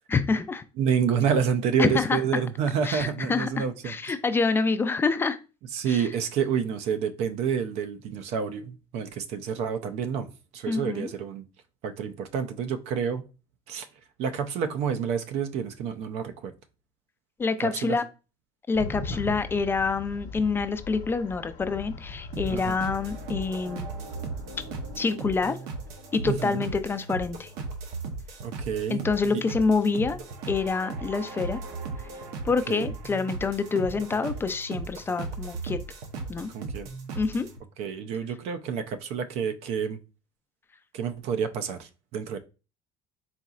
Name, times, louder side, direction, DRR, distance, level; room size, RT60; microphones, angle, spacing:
voice 1, 0.1-0.6 1.8-2.2 2.8-5.4 5.9-6.1 10.7-11.1 17.4-18.0 18.7-23.9 25.0-25.6 26.1-27.5 28.9-30.2 30.5-31.6 32.4-35.8 36.3-36.5 37.2-37.5, left 4 dB, 20° left, 0.3 m, -27 dB
voice 2, 0.8-4.2 5.7-10.3 10.5-11.4 11.8-13.2 13.7-13.9 14.2-16.5 17.6-18.0 22.5-22.8 26.2-26.7 28.4-29.1 32.7-32.9 36.5-36.9 37.8-40.0 40.9-42.4, right 7 dB, 65° right, 0.5 m, -28 dB
sound 1, 18.7-25.0, left 4 dB, 80° left, 0.9 m, -40 dB
sound 2, 22.3-37.6, right 4 dB, 85° right, 0.9 m, -37 dB
4.2 x 3.9 x 2.4 m
cardioid pair, 135°, 12 cm